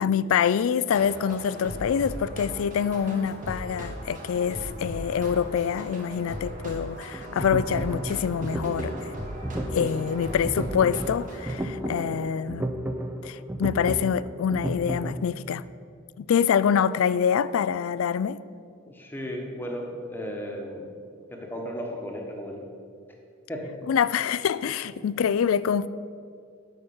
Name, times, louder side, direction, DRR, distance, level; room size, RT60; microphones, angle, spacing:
voice 1, 0.0-9.1 9.7-12.7 13.2-15.6 16.2-18.4 23.9-25.9, left 7 dB, 70° left, 0.3 m, -25 dB
sound 1, 0.9-11.5, equal, 35° right, 1.6 m, -38 dB
sound 2, 7.1-15.3, right 1 dB, 10° right, 0.4 m, -33 dB
voice 2, 11.8-12.2 18.8-20.9 21.3-22.6 23.5-23.7, equal, 10° left, 1.2 m, -35 dB
9.7 x 6.0 x 7.1 m
head